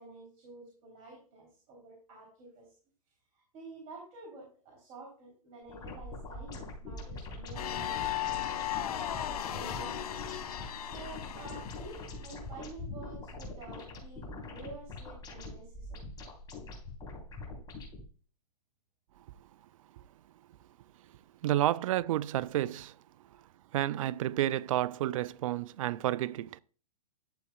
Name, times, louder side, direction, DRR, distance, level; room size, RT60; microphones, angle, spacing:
voice 1, 0.0-2.7 3.3-8.7 9.5-10.3 10.8-16.0, right 2 dB, 35° right, 3.4 m, -50 dB
sound 1, 5.7-18.0, left 2 dB, 20° left, 3.7 m, -43 dB
sound 2, 7.6-12.2, left 11 dB, 65° left, 1.1 m, -36 dB
voice 2, 21.4-23.0 23.3-23.4 23.7-26.6, right 13 dB, 55° right, 0.4 m, -30 dB
11.5 x 8.0 x 2.3 m
hypercardioid pair, 125°, 20 cm